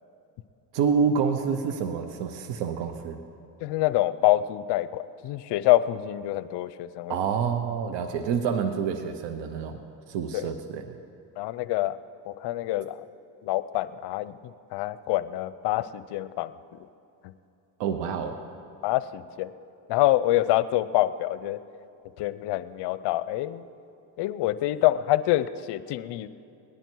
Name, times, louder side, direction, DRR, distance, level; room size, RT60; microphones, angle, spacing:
voice 1, 0.7-3.2 7.1-9.8 10.1-11.0 17.8-18.4, right 6 dB, 70° right, 6 dB, 1.0 m, -27 dB
voice 2, 3.6-7.2 10.3-10.5 11.4-12.0 12.3-13.1 13.4-16.8 17.2-17.3 18.8-19.5 19.9-21.6 22.2-23.6 24.2-26.3, left 15 dB, 65° left, 16 dB, 0.6 m, -26 dB
18.5 x 11.0 x 4.6 m, 2.9 s
supercardioid pair, 90°, 45 cm